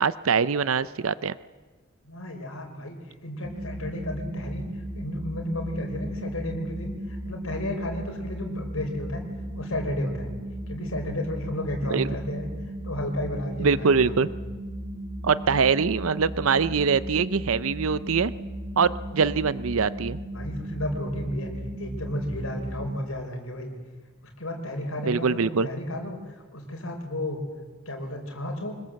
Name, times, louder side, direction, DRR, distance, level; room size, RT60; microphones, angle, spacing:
voice 1, 0.0-1.3 11.9-12.1 13.6-14.3 15.2-18.3 18.8-20.2 25.0-25.7, right 5 dB, 85° right, 16 dB, 0.6 m, -23 dB
voice 2, 2.0-9.2 9.5-10.3 10.7-12.5 12.8-14.3 20.3-21.5 21.8-23.7 24.2-27.4 27.8-28.7, left 1 dB, 85° left, 3 dB, 4.8 m, -33 dB
sound 1, 3.4-23.0, right 1 dB, 65° right, 5.3 m, -36 dB
25.0 x 21.0 x 7.7 m, 1.4 s
head